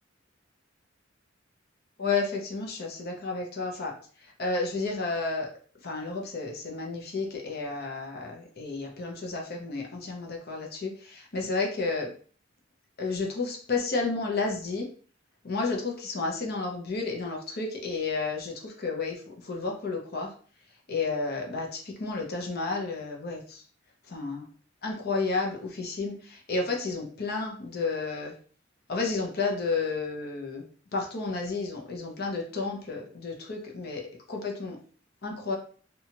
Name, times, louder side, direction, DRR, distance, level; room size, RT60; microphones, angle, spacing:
voice 1, 2.0-3.9 4.4-5.5 5.8-12.1 13.0-14.9 15.4-20.3 20.9-23.6 24.1-24.5 24.8-28.3 28.9-30.6 30.9-34.0 34.3-34.8 35.2-35.6, left 3 dB, 55° left, 1 dB, 0.6 m, -31 dB
2.8 x 2.3 x 2.8 m, 0.44 s
head